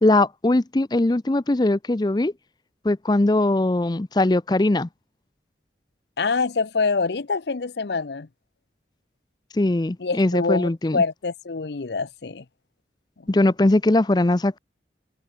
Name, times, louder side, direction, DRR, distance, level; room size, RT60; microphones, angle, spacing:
voice 1, 0.0-2.3 2.8-4.9 9.5-11.0 13.3-14.6, left 2 dB, 25° left, 0.5 m, -20 dB
voice 2, 6.2-8.3 10.0-12.4, left 4 dB, 70° left, 0.7 m, -25 dB
head